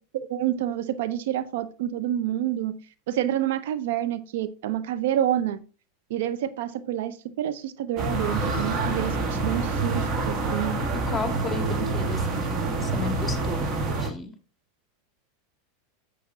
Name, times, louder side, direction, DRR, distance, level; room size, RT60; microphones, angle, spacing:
voice 1, 0.1-2.8 3.1-5.6 6.1-10.8, right 11 dB, 70° right, 13 dB, 0.5 m, -28 dB
sound 1, 8.0-14.1, right 3 dB, 40° right, 1.6 m, -27 dB
voice 2, 11.1-13.7 14.0-14.3, left 3 dB, 5° left, 5 dB, 2.2 m, -33 dB
10.0 x 7.2 x 2.7 m, 0.35 s
hypercardioid pair, 95°, 0 cm